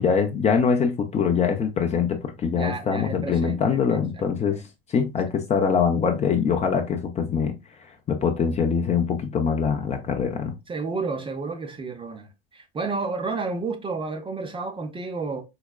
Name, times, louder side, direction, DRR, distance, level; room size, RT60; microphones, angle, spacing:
voice 1, 0.0-4.6 4.9-7.5 8.1-10.5, left 6 dB, 25° left, 0.5 m, -23 dB
voice 2, 2.5-4.6 10.7-15.4, right 4 dB, 15° right, 0.6 m, -31 dB
4.8 x 2.1 x 2.3 m
hypercardioid pair, 100°, 30 cm